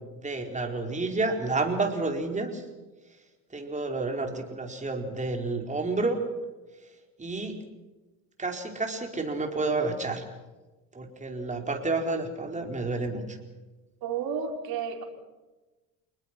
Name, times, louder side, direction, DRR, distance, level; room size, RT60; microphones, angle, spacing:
voice 1, 0.2-2.6 3.5-6.2 7.2-7.6 8.4-10.2 10.9-13.4, right 3 dB, 20° right, 3 dB, 4.4 m, -30 dB
voice 2, 14.0-15.0, right 6 dB, 70° right, 2 dB, 4.7 m, -31 dB
29.0 x 20.5 x 6.0 m, 1.2 s
cardioid pair, 110°, 37 cm